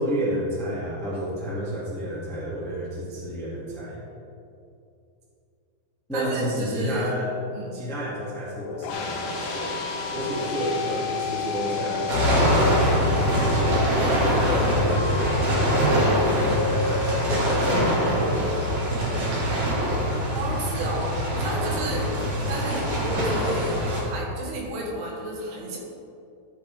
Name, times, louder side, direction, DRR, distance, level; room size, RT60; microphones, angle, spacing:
voice 1, 0.0-4.0 6.1-7.3 7.7-9.8 10.1-13.9 14.6-18.9, right 1 dB, 5° left, -8 dB, 0.4 m, -31 dB
voice 2, 6.1-7.1 7.5-7.8 20.3-22.1 22.5-25.8, right 1 dB, 80° right, -2 dB, 3.4 m, -32 dB
sound 1, 8.5-18.9, left 6 dB, 80° left, 2.1 m, -31 dB
sound 2, 8.9-14.7, left 2 dB, 55° left, 1.6 m, -37 dB
sound 3, 12.1-24.0, equal, 50° right, 2.2 m, -23 dB
12.5 x 6.2 x 3.5 m, 2.6 s
omnidirectional pair, 4.6 m